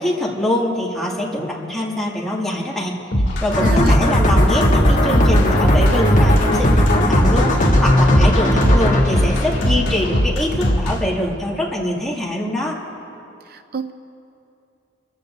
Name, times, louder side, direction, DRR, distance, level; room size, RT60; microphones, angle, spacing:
voice 1, 0.0-3.0 3.4-12.8, left 1 dB, ahead, -5 dB, 2.3 m, -23 dB
sound 1, 3.1-11.0, equal, 70° left, 2.6 m, -20 dB
sound 2, 3.5-10.3, equal, 45° left, 1.5 m, -17 dB
voice 2, 3.6-4.0 13.5-13.9, right 4 dB, 55° right, 9 dB, 0.5 m, -28 dB
sound 3, 4.9-10.3, right 1 dB, 35° right, 1.8 m, -34 dB
29.5 x 15.0 x 2.7 m, 2.7 s
head